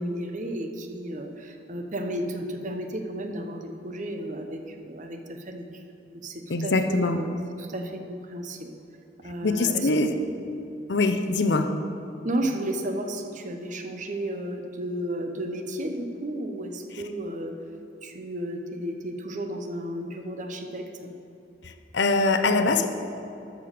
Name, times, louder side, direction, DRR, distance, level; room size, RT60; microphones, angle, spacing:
voice 1, 0.0-5.8 6.2-8.7 9.2-9.9 12.2-17.6 18.0-21.1, right 1 dB, 40° right, 5 dB, 0.9 m, -33 dB
voice 2, 6.5-7.2 9.4-10.1 10.9-11.7 21.9-22.9, left 3 dB, 70° left, 8 dB, 0.7 m, -23 dB
12.5 x 5.2 x 6.6 m, 2.9 s
head